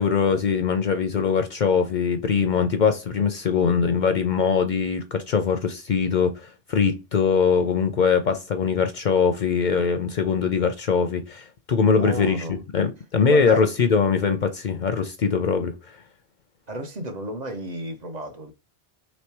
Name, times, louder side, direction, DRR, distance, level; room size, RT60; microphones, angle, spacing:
voice 1, 0.0-15.7, left 6 dB, 60° left, 0.6 m, -22 dB
voice 2, 11.9-12.5 13.3-13.7 16.7-18.5, right 1 dB, 45° right, 0.7 m, -32 dB
3.1 x 3.1 x 4.5 m
omnidirectional pair, 1.1 m